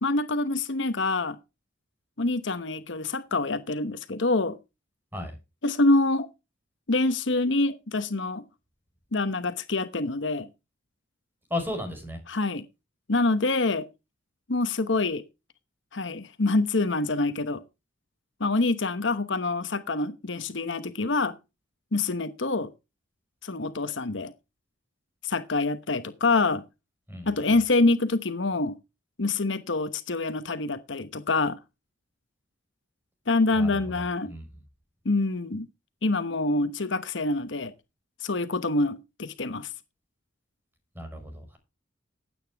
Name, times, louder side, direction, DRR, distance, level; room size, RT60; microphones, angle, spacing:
voice 1, 0.0-1.4 2.2-4.6 5.6-6.3 6.9-8.4 9.1-10.5 12.3-12.6 13.1-13.9 14.5-15.2 15.9-17.6 18.4-21.3 21.9-22.7 23.4-24.3 25.2-26.6 27.3-28.8 29.2-31.6 33.3-34.3 35.0-35.7 36.0-37.7 38.2-39.7, left 2 dB, 70° left, 1.1 m, -26 dB
voice 2, 11.5-12.2 27.1-27.3 33.5-33.9 34.3-34.4 40.9-41.6, left 1 dB, 10° right, 5.5 m, -34 dB
15.5 x 8.9 x 3.5 m
head